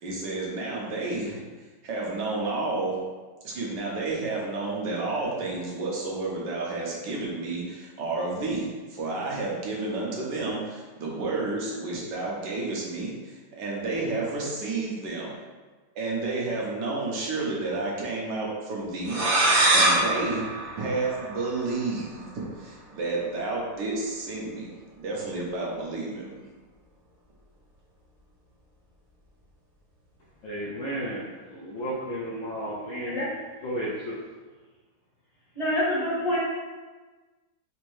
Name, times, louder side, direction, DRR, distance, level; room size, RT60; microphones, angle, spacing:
voice 1, 0.0-1.4 1.8-3.0 3.4-15.4 15.9-20.5 20.8-26.4, right 3 dB, 80° right, -3 dB, 1.5 m, -31 dB
sound 1, 19.1-21.7, right 2 dB, 50° right, 0.7 m, -23 dB
voice 2, 30.4-33.2 33.6-34.1, equal, 65° left, -6 dB, 0.8 m, -33 dB
voice 3, 33.0-33.3 35.5-36.4, left 1 dB, 25° left, -10 dB, 0.9 m, -26 dB
4.2 x 2.7 x 3.1 m, 1.3 s
omnidirectional pair, 1.9 m